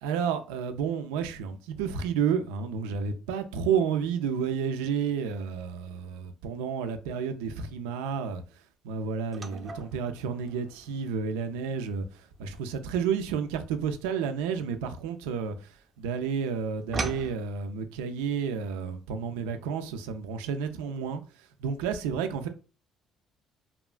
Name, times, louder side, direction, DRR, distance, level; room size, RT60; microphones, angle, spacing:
voice 1, 0.0-8.4 8.8-21.2 21.6-22.5, right 6 dB, 90° right, 0.3 m, -31 dB
sound 1, 9.3-15.8 16.1-17.3, right 3 dB, 35° right, 0.6 m, -40 dB
2.8 x 2.3 x 2.4 m
supercardioid pair, 75°, 0 cm